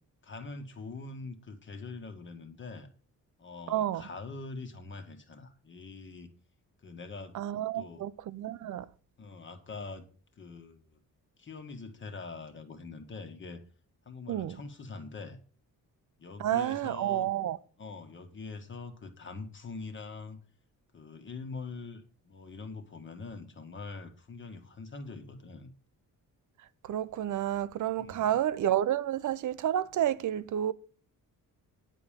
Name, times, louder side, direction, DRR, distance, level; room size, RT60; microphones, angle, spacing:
voice 1, 0.2-2.9 3.4-6.3 6.8-7.4 7.7-8.0 9.2-10.0 10.4-11.0 11.4-13.6 14.0-15.4 16.2-17.3 17.8-20.4 20.9-25.7 27.9-28.4, left 3 dB, 35° left, 1.4 m, -43 dB
voice 2, 3.7-4.0 7.3-8.8 14.3-14.5 16.4-17.6 26.9-30.7, right 11 dB, 60° right, 0.6 m, -30 dB
9.9 x 5.0 x 7.3 m
wide cardioid pair, 165°, 34 cm